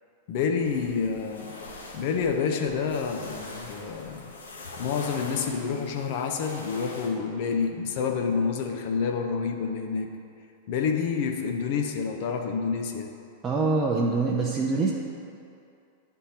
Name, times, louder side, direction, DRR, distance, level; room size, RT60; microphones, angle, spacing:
voice 1, 0.3-1.5 1.9-4.3 4.8-10.1 10.7-13.1, left 5 dB, 55° left, 4 dB, 0.6 m, -28 dB
sound 1, 0.6-7.1, left 2 dB, 80° left, 0.9 m, -43 dB
voice 2, 13.4-14.9, right 3 dB, 25° right, -2 dB, 0.6 m, -24 dB
9.9 x 3.6 x 2.8 m, 2.5 s
hypercardioid pair, 100°, 0 cm